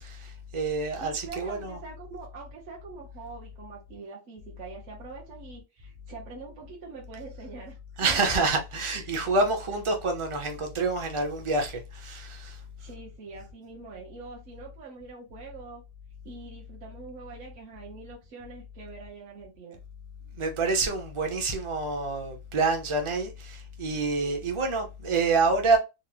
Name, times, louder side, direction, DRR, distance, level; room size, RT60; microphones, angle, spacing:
voice 1, 0.0-1.8 8.0-12.6 20.4-25.8, right 3 dB, 35° right, 0.5 m, -27 dB
voice 2, 0.9-8.2 8.9-9.0 12.8-15.8 16.2-19.8, right 4 dB, 65° right, 1.1 m, -44 dB
3.9 x 2.0 x 2.7 m
omnidirectional pair, 1.4 m